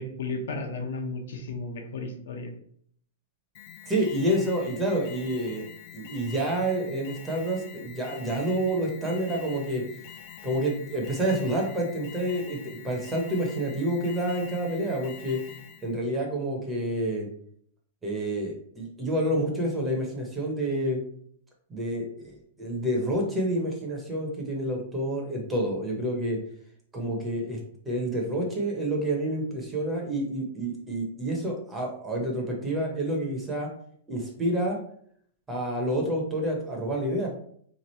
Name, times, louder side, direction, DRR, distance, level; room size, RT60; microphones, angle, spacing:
voice 1, 0.0-2.5, left 3 dB, 70° left, 4 dB, 0.8 m, -34 dB
Alarm, 3.5-15.9, left 8 dB, 35° left, 0.4 m, -46 dB
voice 2, 3.9-5.7 5.9-9.8 10.4-15.4 15.8-17.3 18.0-21.0 21.7-26.4 26.9-27.6 27.9-33.7 34.1-34.8 35.5-37.3, right 1 dB, 10° right, -1 dB, 0.7 m, -28 dB
3.5 x 3.0 x 4.2 m, 0.62 s
supercardioid pair, 175°, 0 cm